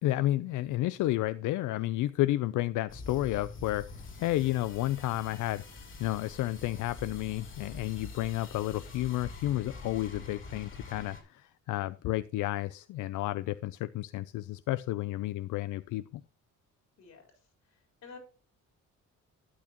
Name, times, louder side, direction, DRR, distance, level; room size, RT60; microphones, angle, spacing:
voice 1, 0.0-5.6 6.0-16.2, left 15 dB, 85° left, 0.5 m, -31 dB
sound 1, 2.9-11.2, left 3 dB, 40° left, 2.7 m, -45 dB
voice 2, 17.0-18.2, left 5 dB, 60° left, 4.1 m, -52 dB
12.5 x 8.5 x 2.9 m
cardioid pair, 150°, 30 cm